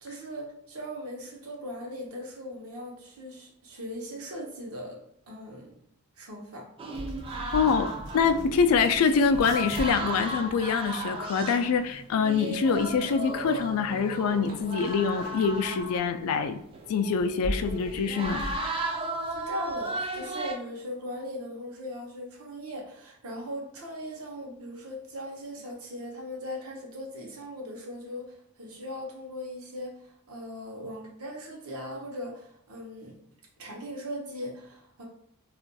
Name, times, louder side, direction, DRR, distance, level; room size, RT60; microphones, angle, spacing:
voice 1, 0.0-5.0 5.3-5.8 6.2-6.7 19.3-33.2 33.6-35.0, equal, 75° right, -1 dB, 0.8 m, -39 dB
sound 1, 6.8-16.4 16.7-20.5, right 2 dB, 25° right, 0.3 m, -35 dB
sound 2, 6.9-18.6, equal, 45° right, 0.7 m, -41 dB
voice 2, 7.5-16.6 16.9-18.4, left 5 dB, 70° left, 9 dB, 0.3 m, -25 dB
2.4 x 2.2 x 3.9 m, 0.70 s
head